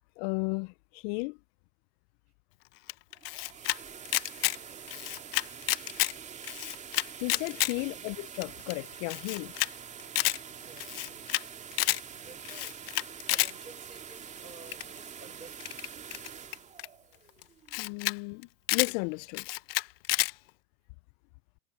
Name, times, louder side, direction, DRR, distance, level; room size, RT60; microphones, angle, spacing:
voice 1, 0.2-1.4 7.2-9.5 17.8-19.4, left 32 dB, 20° left, 0.5 m, -34 dB
Camera, 2.9-3.8 4.1-4.6 4.9-6.1 6.4-7.7 8.1-8.2 8.4-8.5 8.7-8.8 9.1-9.7 10.0-10.4 10.8-11.4 11.7-12.0 12.5-13.5 14.7-15.0 15.6-16.9 17.4-17.5 17.7-18.2 18.4-18.9 19.3-20.3, left 19 dB, 40° left, 0.8 m, -29 dB
sound 1, 3.1-18.0, right 7 dB, 15° right, 2.4 m, -46 dB
voice 2, 4.7-5.2 7.8-8.1 10.5-11.4 12.1-15.9 17.7-17.8, right 3 dB, 90° right, 6.6 m, -54 dB
figure-of-eight pair, 110°, 45 cm